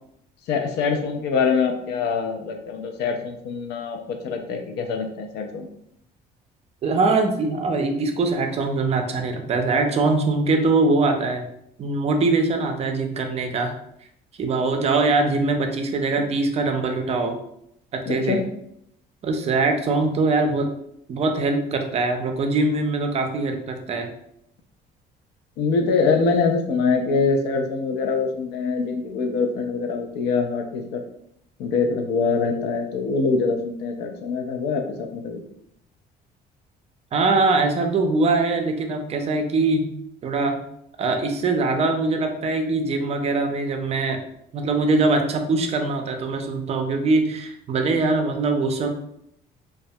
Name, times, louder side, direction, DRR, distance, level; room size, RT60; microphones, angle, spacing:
voice 1, 0.5-5.7 18.1-18.4 25.6-31.0 31.6-35.4, left 4 dB, 85° left, 4 dB, 0.4 m, -24 dB
voice 2, 6.8-11.5 11.8-13.7 14.4-17.4 17.9-18.4 19.2-20.7 21.1-24.1 37.1-39.9 40.2-40.6 41.0-44.2 44.5-48.9, right 3 dB, 40° right, 5 dB, 0.4 m, -22 dB
2.2 x 2.1 x 2.7 m, 0.74 s
cardioid pair, 110°, 17 cm